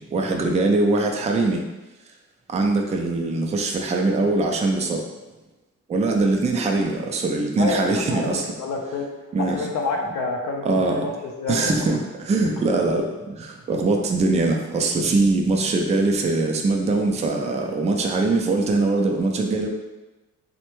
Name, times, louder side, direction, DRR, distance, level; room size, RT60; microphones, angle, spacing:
voice 1, 0.1-1.6 2.5-5.0 5.9-8.5 9.3-9.6 10.6-11.0 11.5-13.1 13.4-19.7, right 3 dB, 25° right, 2 dB, 0.4 m, -22 dB
voice 2, 7.6-9.1 9.4-11.7, left 3 dB, 65° left, 0 dB, 0.5 m, -28 dB
3.3 x 2.1 x 3.0 m, 1.1 s
cardioid pair, 90°, 30 cm